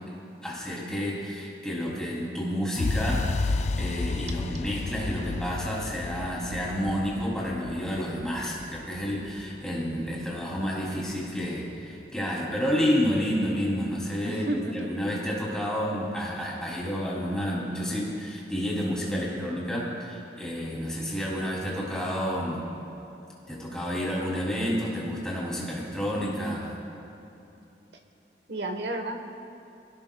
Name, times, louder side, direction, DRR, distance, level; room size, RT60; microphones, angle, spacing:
voice 1, 0.4-22.7 23.5-26.7, equal, 5° left, -5 dB, 2.8 m, -30 dB
sound 1, 2.8-10.7, left 3 dB, 40° left, 0.3 m, -32 dB
voice 2, 14.2-14.9 28.5-29.2, right 1 dB, 75° right, 5 dB, 1.2 m, -31 dB
23.0 x 17.0 x 2.3 m, 2.9 s
head